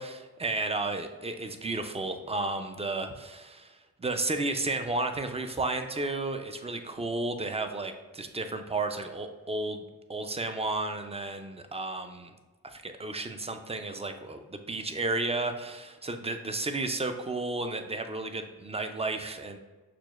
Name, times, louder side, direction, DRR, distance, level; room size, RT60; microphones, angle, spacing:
voice 1, 0.0-9.8 10.1-12.3 12.6-19.6, right 2 dB, 20° right, 7 dB, 0.4 m, -33 dB
5.9 x 2.2 x 2.4 m, 1.3 s
cardioid pair, 45°, 36 cm